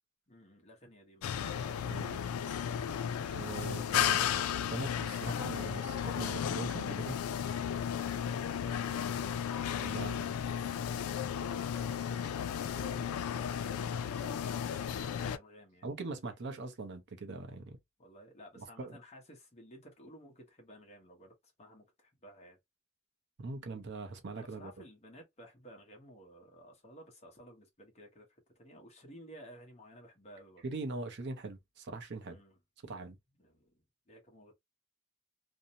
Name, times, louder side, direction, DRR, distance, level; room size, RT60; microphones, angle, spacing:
voice 1, 0.3-2.2 3.9-4.6 8.2-9.2 11.4-13.9 14.2-15.9 18.0-22.6 24.3-30.6 32.3-32.6 33.4-34.5, right 1 dB, 30° left, 0.9 m, -55 dB
sound 1, 1.2-15.4, left 8 dB, 75° left, 0.3 m, -34 dB
voice 2, 1.9-2.2 3.3-7.2 9.8-10.3 15.8-17.8 18.6-19.0 23.4-24.7 30.6-32.4 32.8-33.2, right 3 dB, 55° right, 0.6 m, -42 dB
2.6 x 2.1 x 2.7 m
head